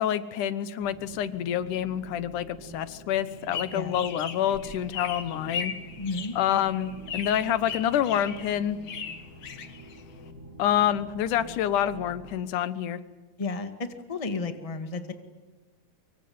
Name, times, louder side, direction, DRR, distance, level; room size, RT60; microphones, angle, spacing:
voice 1, 0.0-5.7 6.4-8.8 10.6-13.0, left 10 dB, 90° left, 15 dB, 2.6 m, -27 dB
sound 1, 0.8-12.4, right 1 dB, 5° right, 5.2 m, -47 dB
sound 2, 3.3-10.3, left 6 dB, 50° left, 2.2 m, -38 dB
voice 2, 3.7-4.0 6.0-6.3 13.4-13.7 14.1-15.1, left 3 dB, 15° left, 8 dB, 1.4 m, -32 dB
24.5 x 24.0 x 9.5 m, 1.3 s
omnidirectional pair, 3.5 m